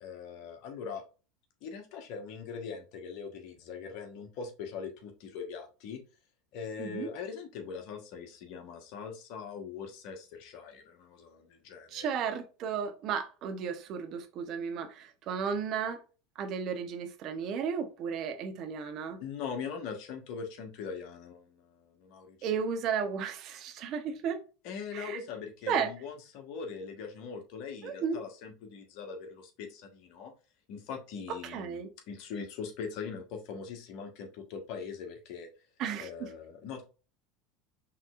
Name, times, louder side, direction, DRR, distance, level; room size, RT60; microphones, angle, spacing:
voice 1, 0.0-1.0 1.6-6.0 6.5-12.1 19.2-22.4 24.6-30.3 30.7-31.8 32.1-35.5 36.0-36.8, left 6 dB, 60° left, 1.3 m, -41 dB
voice 2, 11.9-16.0 16.4-19.2 22.4-24.4 24.9-25.2 25.7-25.9 27.8-28.2 31.3-31.9 35.8-36.3, right 6 dB, 50° right, 1.0 m, -34 dB
5.8 x 3.3 x 2.5 m
hypercardioid pair, 85°, 0 cm